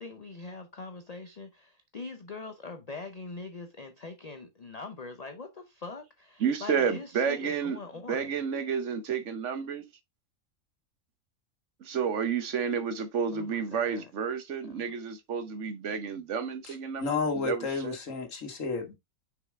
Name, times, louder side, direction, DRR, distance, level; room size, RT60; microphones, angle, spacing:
voice 1, 0.0-8.4 13.3-14.1 14.6-14.9, left 3 dB, 40° left, 0.6 m, -43 dB
voice 2, 6.4-7.8 8.1-9.8 11.8-18.0, right 6 dB, 65° right, 1.2 m, -31 dB
voice 3, 16.7-19.0, left 4 dB, 70° left, 1.8 m, -32 dB
6.6 x 4.8 x 3.5 m
omnidirectional pair, 1.4 m